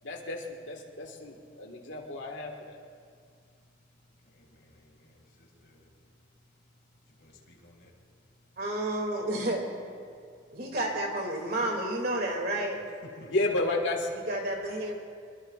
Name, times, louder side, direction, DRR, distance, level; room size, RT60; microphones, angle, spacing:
voice 1, 0.0-2.8 13.3-14.1, left 2 dB, 80° left, 2 dB, 1.7 m, -32 dB
voice 2, 4.5-5.8 7.2-7.9 13.0-13.1, left 1 dB, 55° left, 0 dB, 2.3 m, -57 dB
voice 3, 8.6-9.7 10.5-12.8 14.1-14.9, right 1 dB, 50° right, 1 dB, 2.5 m, -31 dB
23.5 x 22.5 x 2.5 m, 2.2 s
head